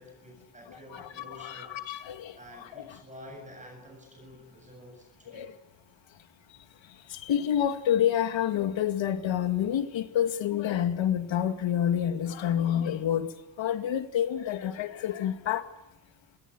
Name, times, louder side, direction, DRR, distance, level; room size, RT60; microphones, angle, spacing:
voice 1, 0.0-1.8 2.4-5.5, left 1 dB, 15° right, 7.5 m, -49 dB
voice 2, 1.4-2.2 5.3-5.5 7.3-13.3 13.6-15.6, left 10 dB, 85° left, 2.4 m, -27 dB
28.0 x 21.5 x 9.7 m
wide cardioid pair, 170°, 44 cm